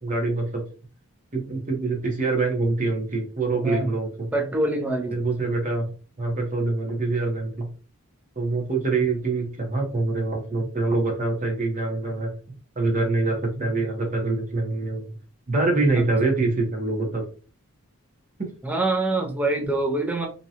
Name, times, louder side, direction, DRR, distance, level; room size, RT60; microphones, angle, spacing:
voice 1, 0.0-0.6 1.3-4.3 5.1-5.9 6.2-7.7 8.4-12.3 12.8-15.1 15.5-17.2, right 3 dB, 35° right, 1 dB, 0.7 m, -25 dB
voice 2, 4.3-5.2 15.9-16.0 18.6-20.3, right 2 dB, 5° right, 1 dB, 0.3 m, -25 dB
2.7 x 2.2 x 2.7 m, 0.38 s
head